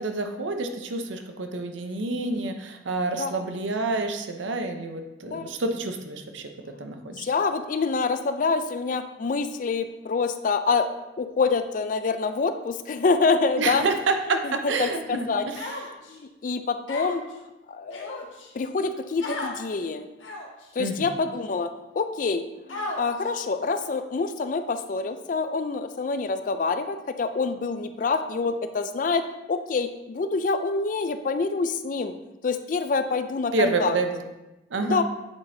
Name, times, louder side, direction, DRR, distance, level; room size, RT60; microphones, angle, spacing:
voice 1, 0.0-6.5 6.8-7.3 13.6-15.7 20.8-21.1 33.5-34.2 34.7-35.0, right 3 dB, 80° right, 6 dB, 0.7 m, -28 dB
voice 2, 7.1-10.9 11.2-13.8 14.4-15.5 16.1-17.2 17.7-18.3 18.5-20.1 20.8-21.7 21.9-32.1 32.4-34.0 34.8-35.0, left 4 dB, 45° left, 10 dB, 0.4 m, -26 dB
Human voice, 15.6-16.2 16.9-17.3 17.9-18.5 19.2-19.6 20.2-20.6 21.3-21.4 22.7-23.3, left 2 dB, 90° left, 1.1 m, -34 dB
8.2 x 5.1 x 2.7 m, 1.0 s
head